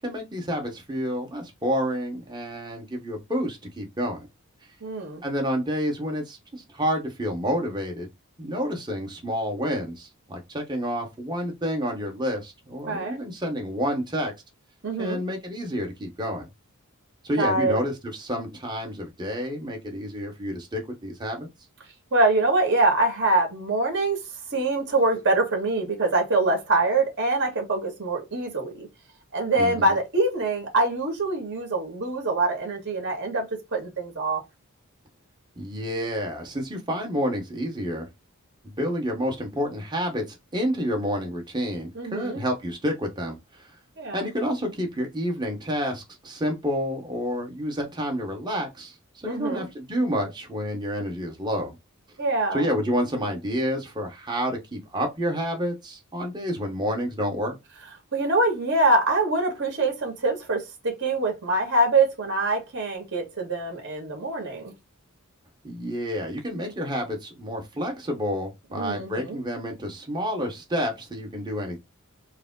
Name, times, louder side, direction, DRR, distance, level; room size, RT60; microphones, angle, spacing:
voice 1, 0.0-4.2 5.2-8.1 8.4-14.3 15.0-16.5 17.2-21.5 29.5-29.9 35.6-38.1 38.6-43.4 44.1-51.8 52.5-57.5 65.6-71.8, equal, 20° right, 1.2 m, -29 dB
voice 2, 4.8-5.2 12.9-13.2 14.8-15.2 17.4-17.8 22.1-24.2 24.5-28.9 29.3-34.4 41.9-42.4 44.0-44.3 49.2-49.6 52.2-52.7 58.1-64.7 68.7-69.4, right 2 dB, 55° right, 2.0 m, -24 dB
4.7 x 2.1 x 3.8 m
head